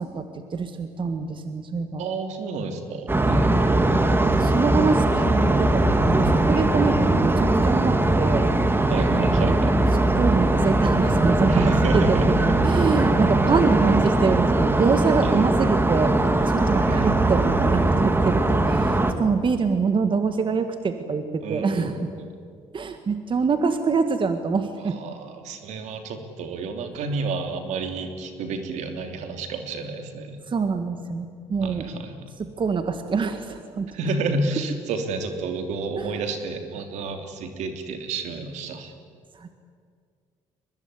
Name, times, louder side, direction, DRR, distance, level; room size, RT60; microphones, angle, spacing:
voice 1, 0.0-2.0 4.2-8.5 9.1-9.6 10.1-22.1 22.7-25.0 30.5-31.9 32.4-33.9 36.0-36.1 39.4-39.5, right 5 dB, 45° right, 8 dB, 1.8 m, -25 dB
voice 2, 2.0-4.1 8.9-9.7 11.5-12.3 15.2-15.4 16.7-17.1 21.4-22.3 24.8-30.4 31.6-32.3 33.9-38.9, right 3 dB, 75° right, 6 dB, 3.1 m, -31 dB
sound 1, 3.1-19.1, right 2 dB, 20° right, 2.6 m, -20 dB
23.5 x 21.0 x 9.8 m, 2.1 s
supercardioid pair, 65°, 12 cm